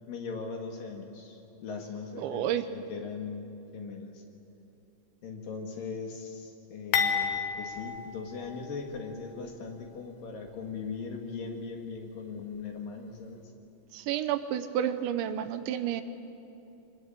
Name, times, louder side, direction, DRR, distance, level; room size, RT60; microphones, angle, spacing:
voice 1, 0.1-3.4 3.7-4.2 5.2-13.4, left 5 dB, 55° left, 3 dB, 3.0 m, -39 dB
voice 2, 2.2-2.7 13.9-16.0, right 10 dB, 80° right, 10 dB, 3.1 m, -30 dB
sound 1, 6.9-9.1 9.5-9.6 10.5-10.6, left 6 dB, 75° left, 3.8 m, -31 dB
26.0 x 21.0 x 9.0 m, 2.9 s
omnidirectional pair, 5.4 m